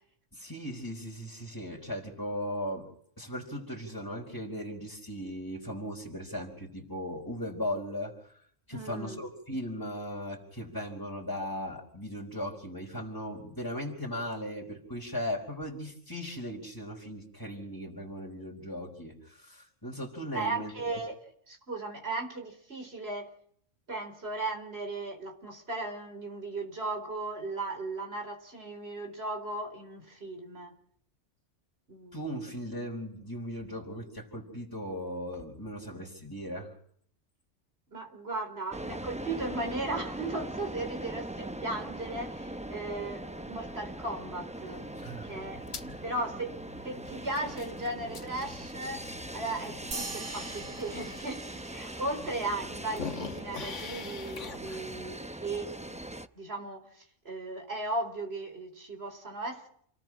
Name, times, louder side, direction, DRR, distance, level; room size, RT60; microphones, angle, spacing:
voice 1, 0.3-2.9 3.2-8.4 8.7-21.0 32.1-36.7 44.9-46.0, equal, 15° left, -5 dB, 4.5 m, -38 dB
voice 2, 8.7-9.2 20.3-21.2 21.5-23.3 23.9-30.7 31.9-32.5 37.9-44.8 45.2-45.6 46.0-46.5 46.8-56.0 56.4-59.7, right 2 dB, 55° right, 5 dB, 4.8 m, -36 dB
sound 1, 38.7-56.3, right 1 dB, 5° right, 0.6 m, -41 dB
sound 2, 44.7-51.2 51.7-51.8 52.1-55.2, left 5 dB, 75° left, 1.7 m, -45 dB
sound 3, 49.9-52.7, right 3 dB, 85° right, 2.5 m, -42 dB
29.0 x 18.5 x 6.3 m, 0.64 s
omnidirectional pair, 1.3 m